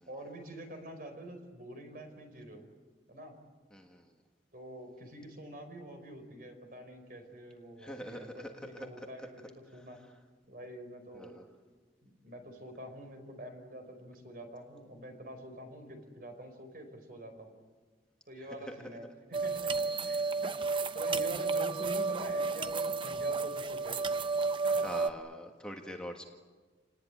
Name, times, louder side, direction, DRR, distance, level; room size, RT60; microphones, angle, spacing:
voice 1, 0.1-2.6 3.1-3.4 4.5-10.0 10.5-11.4 12.0-17.6 18.3-19.7 20.0-24.0 24.6-24.9, right 1 dB, 50° right, 5 dB, 4.9 m, -46 dB
voice 2, 3.7-4.1 7.8-9.3 11.1-11.5 18.7-18.8 24.8-26.2, equal, 5° left, 2 dB, 1.7 m, -44 dB
sound 1, 19.3-25.1, right 4 dB, 25° right, 0.7 m, -32 dB
28.5 x 19.5 x 9.3 m, 1.4 s
head